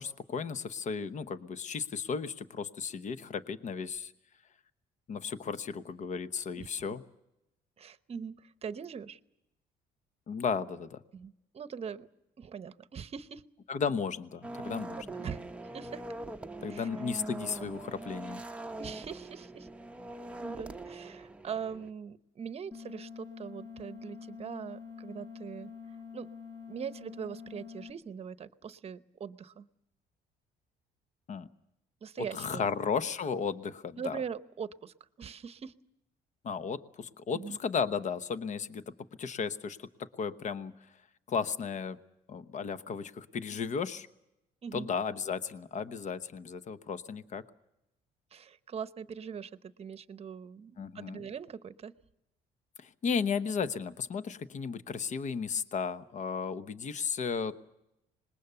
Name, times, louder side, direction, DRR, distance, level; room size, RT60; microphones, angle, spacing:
voice 1, 0.0-4.1 5.1-7.0 10.3-11.0 13.7-15.1 16.6-18.4 31.3-31.5 32.3-34.2 36.4-38.8 39.2-40.7 41.3-42.0 42.3-44.1 44.7-47.4 50.8-51.2 52.8-57.5, left 6 dB, 45° left, 12 dB, 1.1 m, -34 dB
voice 2, 7.8-9.2 11.1-12.1 12.4-13.4 15.1-15.4 15.7-16.0 16.7-16.9 18.8-19.7 20.4-26.3 26.7-29.7 32.0-32.7 34.0-35.7 37.3-37.6 44.6-44.9 48.3-51.9, right 7 dB, 35° right, 13 dB, 0.9 m, -42 dB
sound 1, 14.4-21.9, right 1 dB, 5° right, 0.8 m, -42 dB
sound 2, 22.7-27.9, left 6 dB, 20° left, 1.8 m, -46 dB
25.5 x 20.5 x 7.0 m, 0.87 s
cardioid pair, 110°, 17 cm